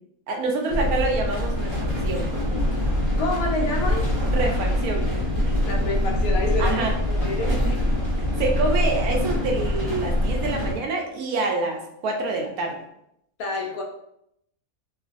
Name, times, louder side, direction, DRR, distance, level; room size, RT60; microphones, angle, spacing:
voice 1, 0.3-2.6 4.2-5.6 6.6-6.9 7.5-7.7 8.2-12.8, right 3 dB, 85° right, 2 dB, 1.1 m, -27 dB
sound 1, 0.7-10.7, left 1 dB, 30° right, 0.9 m, -24 dB
voice 2, 3.2-4.1 5.6-7.6 13.4-13.8, left 2 dB, 85° left, 1 dB, 1.1 m, -28 dB
3.1 x 2.5 x 2.4 m, 0.76 s
omnidirectional pair, 1.5 m